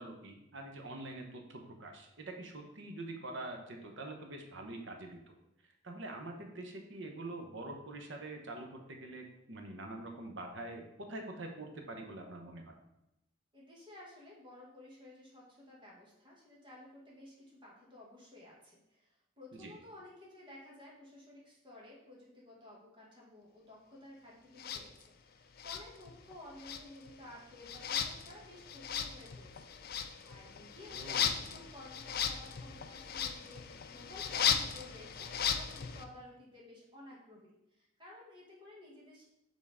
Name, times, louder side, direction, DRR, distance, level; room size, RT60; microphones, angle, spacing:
voice 1, 0.0-5.3 5.8-12.7 19.6-19.7 30.9-31.3, right 2 dB, 70° right, 3 dB, 1.0 m, -45 dB
voice 2, 13.5-39.3, left 1 dB, 25° right, -5 dB, 1.9 m, -54 dB
sound 1, 24.6-24.8 25.6-26.3 26.6-36.0, left 7 dB, 50° left, 0.5 m, -37 dB
7.2 x 3.9 x 3.6 m, 0.86 s
head